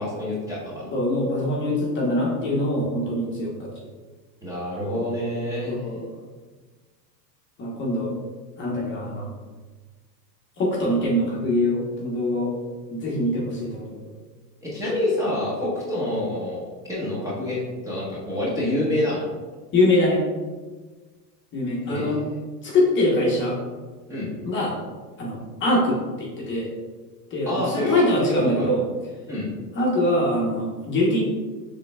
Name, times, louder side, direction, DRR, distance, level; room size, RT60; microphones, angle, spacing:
voice 1, 0.0-0.9 4.4-5.8 14.6-16.6 16.9-19.2 21.8-22.4 24.1-24.3 27.5-28.7 29.3-29.5, left 1 dB, 5° right, -8 dB, 0.8 m, -27 dB
voice 2, 0.9-3.7 5.7-6.1 7.6-8.1 8.6-9.3 10.6-12.5 12.9-14.1 15.6-15.7 19.7-20.2 21.5-22.2 22.6-23.6 24.4-24.7 25.2-26.7 27.3-28.8 29.7-31.2, left 1 dB, 25° left, -4 dB, 0.9 m, -23 dB
6.7 x 3.3 x 2.2 m, 1.4 s
supercardioid pair, 130°, 50 cm